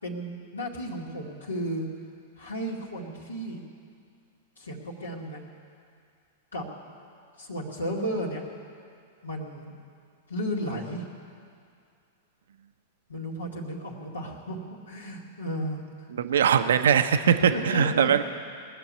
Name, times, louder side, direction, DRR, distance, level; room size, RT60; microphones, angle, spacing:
voice 1, 0.0-1.9 2.4-3.6 4.6-5.4 6.5-6.7 7.4-8.4 9.2-9.7 10.3-11.0 13.1-15.8 17.5-18.1, equal, 85° left, -4 dB, 2.3 m, -33 dB
voice 2, 16.2-18.2, right 8 dB, 65° right, 9 dB, 0.7 m, -21 dB
20.0 x 6.9 x 9.6 m, 2.3 s
figure-of-eight pair, 100°, 0 cm